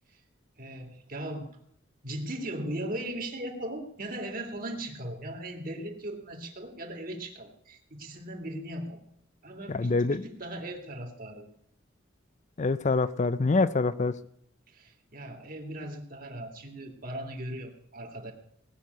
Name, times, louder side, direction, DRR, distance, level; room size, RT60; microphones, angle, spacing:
voice 1, 0.6-1.5 2.0-9.0 9.4-11.5 14.7-18.3, right 1 dB, 50° right, 3 dB, 2.8 m, -38 dB
voice 2, 9.7-10.2 12.6-14.1, left 3 dB, 40° left, 14 dB, 0.5 m, -25 dB
18.5 x 6.5 x 9.6 m, 0.70 s
head